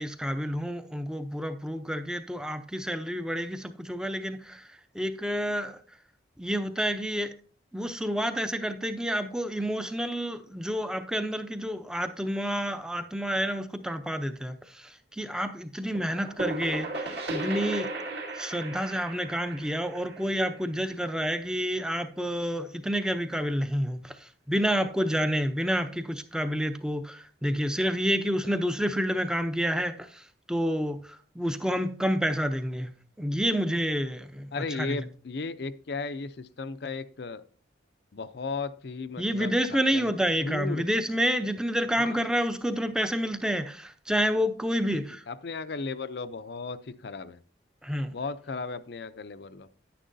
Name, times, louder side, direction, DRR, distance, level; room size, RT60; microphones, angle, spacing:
voice 1, 0.0-4.6 4.9-5.7 6.4-7.3 7.7-14.9 15.2-17.9 18.4-24.1 24.5-30.2 30.5-31.0 31.4-32.9 33.2-34.5 34.8-35.0 39.2-45.2 47.8-48.1, equal, 5° right, 8 dB, 0.5 m, -29 dB
sound 1, 15.9-21.5, right 2 dB, 55° right, 1.9 m, -36 dB
voice 2, 34.5-37.4 38.1-40.1 40.4-40.9 42.0-42.2 44.9-45.0 45.3-47.4 48.1-49.7, left 4 dB, 55° left, 13 dB, 0.5 m, -35 dB
10.0 x 9.9 x 2.6 m, 0.44 s
head